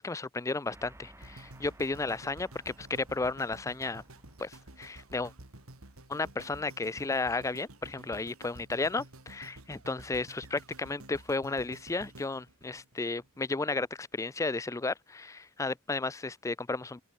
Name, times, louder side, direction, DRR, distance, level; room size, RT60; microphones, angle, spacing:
voice 1, 0.0-4.0 4.4-5.3 6.1-17.0, left 3 dB, 15° left, 0.4 m, -33 dB
sound 1, 0.7-6.5, right 1 dB, 15° right, 3.1 m, -57 dB
sound 2, 1.2-13.4 14.0-14.1, right 1 dB, 80° right, 3.5 m, -51 dB
open air
head